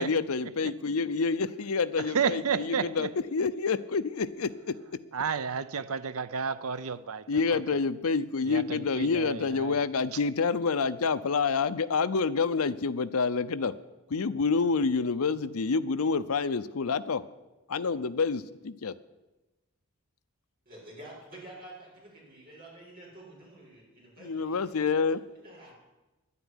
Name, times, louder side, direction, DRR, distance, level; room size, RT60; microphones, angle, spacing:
voice 1, 0.0-5.0 7.3-13.7 14.1-17.2 17.7-18.9 24.2-25.2, left 4 dB, 75° left, 0.6 m, -28 dB
voice 2, 2.0-3.1 5.1-7.6 8.4-9.8, right 6 dB, 75° right, 0.6 m, -32 dB
voice 3, 20.6-24.8 25.3-25.7, right 1 dB, 40° right, 6.6 m, -49 dB
10.5 x 9.6 x 9.9 m
head